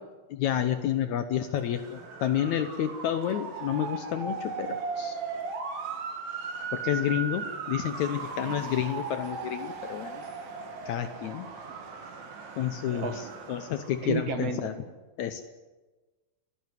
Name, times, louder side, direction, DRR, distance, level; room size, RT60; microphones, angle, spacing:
voice 1, 0.3-5.2 6.7-10.2 10.9-11.5 12.6-14.8 15.2-15.4, left 10 dB, 70° left, 10 dB, 1.9 m, -30 dB
Motor vehicle (road) / Siren, 1.5-14.2, right 5 dB, 90° right, 4.3 m, -37 dB
voice 2, 12.9-13.3 14.0-14.8, right 5 dB, 55° right, 7 dB, 2.0 m, -33 dB
30.0 x 10.5 x 9.4 m, 1.2 s
omnidirectional pair, 4.0 m